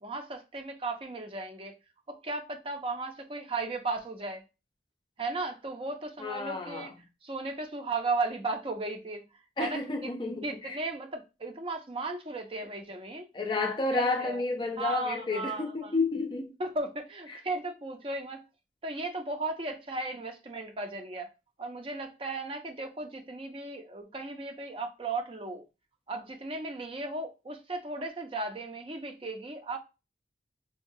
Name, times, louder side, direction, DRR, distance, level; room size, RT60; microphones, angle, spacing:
voice 1, 0.0-1.7 2.1-4.4 5.2-6.9 7.2-9.2 9.6-10.1 10.4-13.3 13.9-14.4 14.8-15.9 16.6-18.4 18.8-21.3 21.6-25.6 26.1-29.8, right 3 dB, 30° right, 0.6 m, -35 dB
voice 2, 6.2-6.9 9.6-10.8 13.3-16.6 17.3-17.4, left 3 dB, 25° left, 0.4 m, -31 dB
4.6 x 2.3 x 2.6 m
head